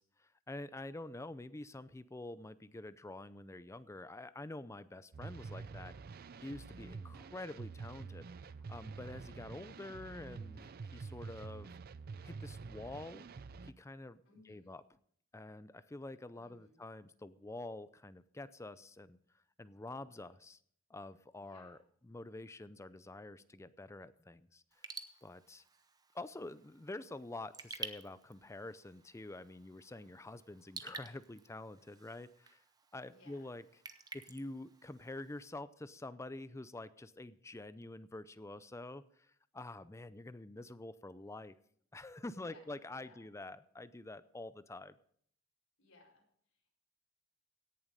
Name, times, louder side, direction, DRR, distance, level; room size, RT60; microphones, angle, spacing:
voice 1, 0.0-5.9 6.4-8.3 8.7-11.7 12.2-13.3 13.6-14.2 14.4-14.8 15.3-19.2 19.6-20.6 20.9-21.8 22.1-24.9 25.2-25.6 26.1-32.6 32.9-33.6 34.1-41.6 41.9-45.0, left 2 dB, 15° left, 15 dB, 0.4 m, -47 dB
sound 1, 5.1-13.7, right 4 dB, 45° right, 0.4 m, -48 dB
voice 2, 14.2-14.7 16.3-16.8 21.3-21.8 33.1-33.5 42.4-43.3 45.8-46.7, left 2 dB, 70° left, -1 dB, 4.9 m, -64 dB
Raindrop / Drip, 24.7-35.5, right 4 dB, 20° right, 0.7 m, -52 dB
17.0 x 7.3 x 5.1 m, 0.64 s
head